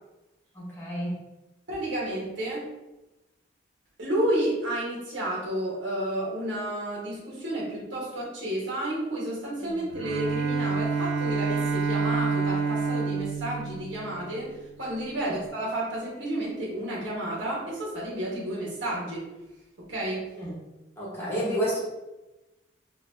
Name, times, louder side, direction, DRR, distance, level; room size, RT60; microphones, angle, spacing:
voice 1, 0.5-1.1 9.6-9.8 15.2-15.4 20.4-20.5 21.0-21.8, equal, 15° left, -7 dB, 1.1 m, -30 dB
voice 2, 1.7-2.7 4.0-14.5 14.8-19.3 19.8-20.3, right 1 dB, 70° right, -6 dB, 1.3 m, -31 dB
Bowed string instrument, 9.9-14.5, right 5 dB, 85° right, 0.4 m, -28 dB
4.0 x 2.6 x 2.6 m, 1.0 s
head